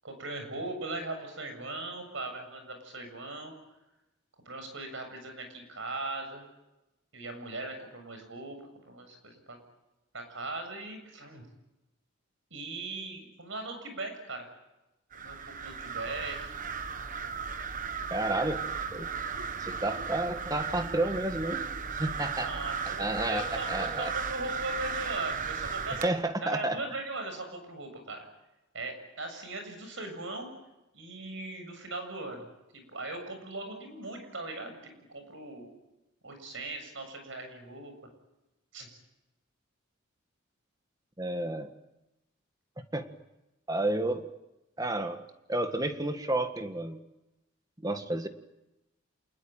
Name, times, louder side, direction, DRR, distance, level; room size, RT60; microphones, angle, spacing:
voice 1, 0.0-3.5 4.5-6.5 7.1-9.6 10.1-11.5 12.5-14.5 15.1-16.5 22.2-28.3 28.7-30.5 30.9-32.5 32.7-35.7 36.2-37.9 38.7-39.0, right 2 dB, 65° right, 6 dB, 7.4 m, -39 dB
sound 1, 15.1-26.1, right 6 dB, 40° right, 1.2 m, -36 dB
voice 2, 18.1-18.6 18.9-19.1 19.6-21.7 21.9-22.5 23.0-24.1 26.0-26.8 41.2-41.7 42.9-43.1 43.7-44.3 44.8-47.0 47.8-48.3, right 2 dB, 20° right, 7 dB, 1.7 m, -31 dB
28.0 x 20.0 x 9.1 m, 0.97 s
head